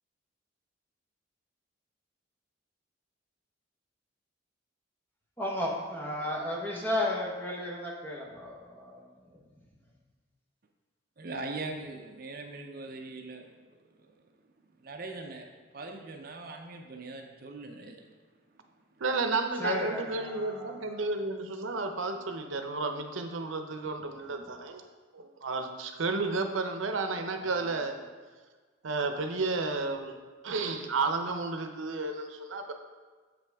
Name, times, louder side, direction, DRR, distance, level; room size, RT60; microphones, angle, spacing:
voice 1, 5.4-9.4 19.6-21.0, left 1 dB, 10° left, -3 dB, 1.1 m, -34 dB
voice 2, 11.2-13.5 14.0-14.1 14.8-18.2, right 3 dB, 50° right, 3 dB, 0.5 m, -41 dB
voice 3, 19.0-24.9 25.1-27.9 28.8-30.1 30.4-32.7, right 3 dB, 85° right, 6 dB, 0.7 m, -32 dB
7.6 x 5.8 x 3.5 m, 1.4 s
head